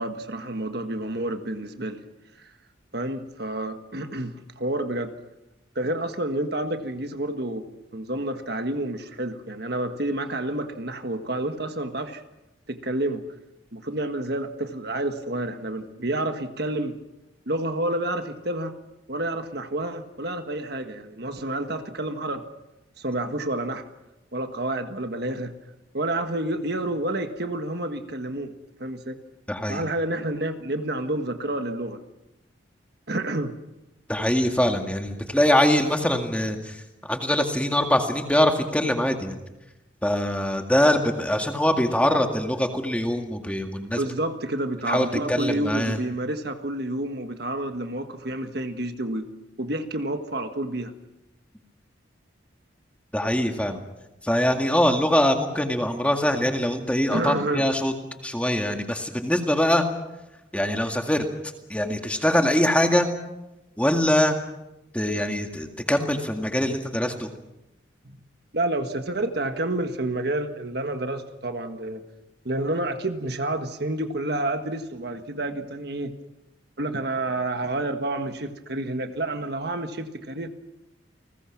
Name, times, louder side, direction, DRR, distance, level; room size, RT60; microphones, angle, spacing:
voice 1, 0.0-2.0 2.4-2.5 2.9-5.1 5.7-7.6 7.9-12.2 12.7-13.2 13.7-17.0 17.5-18.7 19.1-22.4 23.0-23.8 24.3-25.6 25.9-28.5 28.8-29.2 29.7-32.0 33.1-33.5 43.9-49.3 49.6-50.9 57.1-57.7 68.0-68.2 68.5-72.0 72.4-76.1 76.8-80.5, right 1 dB, 55° right, 7 dB, 1.5 m, -29 dB
voice 2, 29.5-29.8 34.1-39.4 40.0-44.0 44.9-46.0 53.1-53.8 54.2-57.9 58.2-59.8 60.5-61.2 61.7-63.1 63.8-64.4 64.9-67.3, left 1 dB, 5° left, 4 dB, 2.0 m, -23 dB
29.5 x 20.5 x 6.0 m, 0.96 s
head